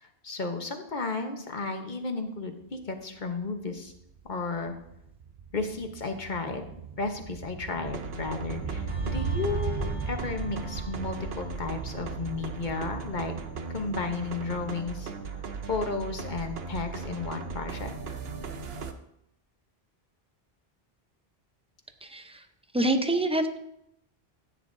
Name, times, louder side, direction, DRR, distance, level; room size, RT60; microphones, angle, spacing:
voice 1, 0.0-3.9 4.3-4.7 5.5-6.7 7.0-13.3 13.7-15.4 15.7-17.9, left 4 dB, 50° left, 5 dB, 1.2 m, -33 dB
sound 1, 2.8-2.9 3.2-13.5 13.8-13.9, right 6 dB, 55° right, 0.7 m, -37 dB
sound 2, 7.8-18.9, right 5 dB, 75° right, 1.0 m, -38 dB
sound 3, 8.9-17.9 18.3-18.5, left 1 dB, 30° left, 1.4 m, -44 dB
voice 2, 22.7-23.6, right 1 dB, 5° right, 7 dB, 0.6 m, -25 dB
14.5 x 9.2 x 2.7 m, 0.80 s
omnidirectional pair, 1.0 m